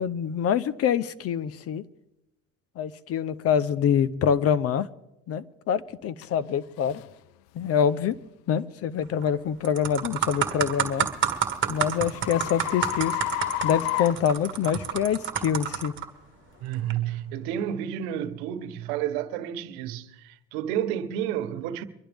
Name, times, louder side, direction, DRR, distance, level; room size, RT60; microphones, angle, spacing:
voice 1, 0.0-1.8 2.8-4.9 5.3-7.0 7.5-8.1 8.5-11.1 11.7-13.2 13.6-15.9, left 8 dB, 50° left, 0.8 m, -25 dB
sound 1, 6.2-6.3 6.9-7.1 7.7-7.9 10.5-15.0, left 15 dB, 85° left, 0.5 m, -32 dB
sound 2, 9.0-9.3 9.6-16.0 16.7-16.9, right 8 dB, 40° right, 1.7 m, -29 dB
voice 2, 16.6-21.8, right 10 dB, 90° right, 1.1 m, -30 dB
24.0 x 11.5 x 3.5 m
cardioid pair, 110°, 31 cm